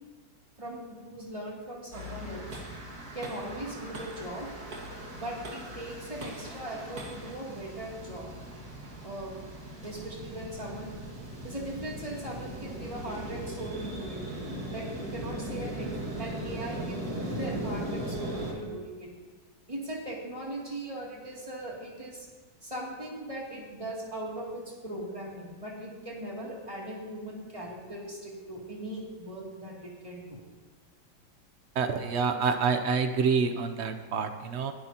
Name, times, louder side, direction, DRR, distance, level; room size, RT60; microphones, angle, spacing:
voice 1, 0.6-2.5 3.1-4.5 5.1-8.3 9.0-9.4 9.8-10.9 11.4-14.2 14.7-19.1 19.7-22.3 22.6-30.4, right 1 dB, 15° right, -4 dB, 2.7 m, -39 dB
sound 1, 1.9-18.5, right 1 dB, 50° right, 2.5 m, -39 dB
voice 2, 31.8-34.7, right 5 dB, 85° right, 8 dB, 0.6 m, -27 dB
21.0 x 12.0 x 2.9 m, 1.4 s
omnidirectional pair, 2.1 m